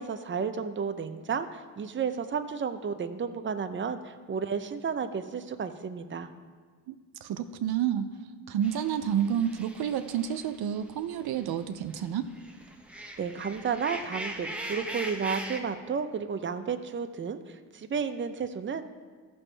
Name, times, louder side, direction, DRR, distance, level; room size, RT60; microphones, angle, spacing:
voice 1, 0.0-6.3 13.2-18.8, right 6 dB, 30° right, 8 dB, 0.6 m, -32 dB
voice 2, 7.2-8.1 8.5-12.3, right 9 dB, 75° right, 9 dB, 0.6 m, -29 dB
sound 1, 8.6-11.5 11.9-15.6, right 1 dB, 5° right, 1.0 m, -40 dB
14.0 x 6.2 x 3.3 m, 1.5 s
cardioid pair, 70°, 38 cm